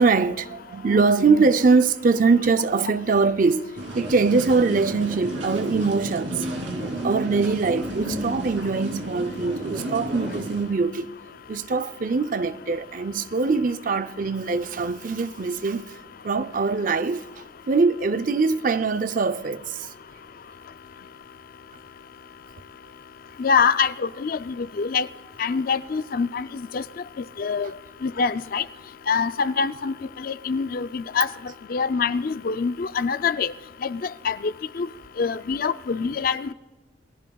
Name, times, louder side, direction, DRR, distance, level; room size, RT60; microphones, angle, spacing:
voice 1, 0.0-6.5 6.8-11.1 11.5-15.9 16.2-19.9 27.6-27.7 36.0-36.1, right 4 dB, 40° right, 0.5 m, -23 dB
sound 1, 3.8-10.7, right 1 dB, 80° right, 2.9 m, -32 dB
voice 2, 23.4-25.1 25.4-26.8 27.2-27.7 28.0-28.6 29.1-31.3 31.7-33.5 33.8-34.9 35.2-36.5, left 5 dB, 45° left, 0.4 m, -25 dB
28.5 x 19.5 x 2.3 m
head